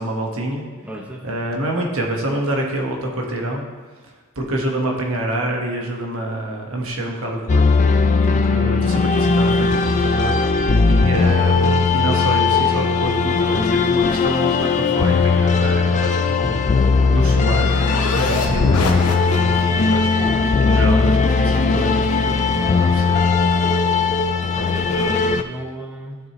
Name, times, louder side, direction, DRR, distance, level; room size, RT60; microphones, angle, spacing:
voice 1, 0.0-0.6 1.2-3.6 4.3-7.6 7.9-10.4 10.9-17.7 18.1-23.3, right 1 dB, 65° right, 0 dB, 1.4 m, -27 dB
voice 2, 0.8-1.4 18.4-18.6 24.4-26.2, equal, 5° right, -1 dB, 0.7 m, -34 dB
sound 1, 7.5-25.4, left 4 dB, 35° left, 0.4 m, -18 dB
sound 2, 16.5-19.8, left 2 dB, 75° left, 0.9 m, -27 dB
12.0 x 6.6 x 3.1 m, 1.3 s
head